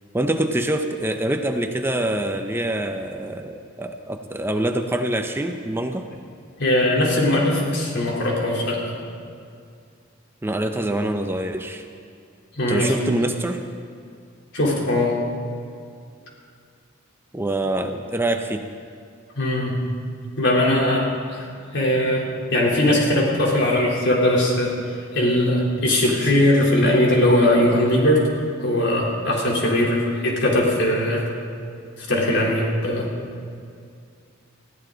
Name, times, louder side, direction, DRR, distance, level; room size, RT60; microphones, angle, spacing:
voice 1, 0.1-6.1 10.4-11.8 12.7-13.6 17.3-18.7, right 1 dB, 10° right, 5 dB, 0.6 m, -25 dB
voice 2, 6.6-8.8 12.5-12.9 14.5-15.1 19.4-19.8 20.4-22.2 22.5-24.7 25.1-28.3 28.6-31.2 32.1-33.1, left 1 dB, 60° left, -3 dB, 3.5 m, -20 dB
21.0 x 14.5 x 3.9 m, 2.3 s
head